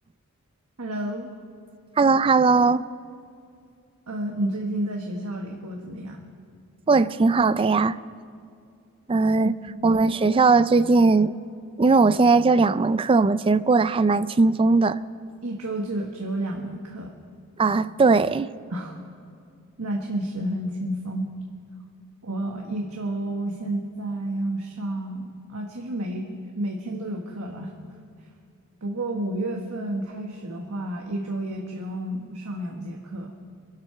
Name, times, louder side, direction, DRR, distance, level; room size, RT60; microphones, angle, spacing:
voice 1, 0.8-1.3 4.1-6.2 9.8-9.9 15.4-17.1 18.7-19.0 19.8-21.3 22.2-26.3 26.5-27.7 28.8-33.3, right 1 dB, 85° right, 1 dB, 1.3 m, -30 dB
voice 2, 2.0-2.8 6.9-8.0 9.1-9.5 9.8-11.3 11.8-15.0 17.6-18.5, right 3 dB, 25° right, 15 dB, 0.4 m, -19 dB
24.0 x 8.2 x 5.7 m, 2.4 s
head